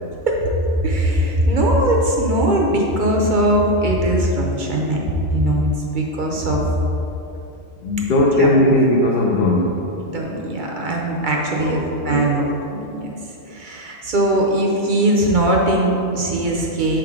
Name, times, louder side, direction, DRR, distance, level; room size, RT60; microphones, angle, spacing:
voice 1, 0.8-5.0 5.3-5.7 5.9-6.6 8.4-8.8 10.1-13.1 13.5-17.0, right 1 dB, 50° right, -1 dB, 0.8 m, -20 dB
voice 2, 7.8-9.8 11.5-12.5, left 1 dB, 60° left, -3 dB, 0.7 m, -18 dB
5.6 x 3.7 x 4.8 m, 2.8 s
omnidirectional pair, 1.2 m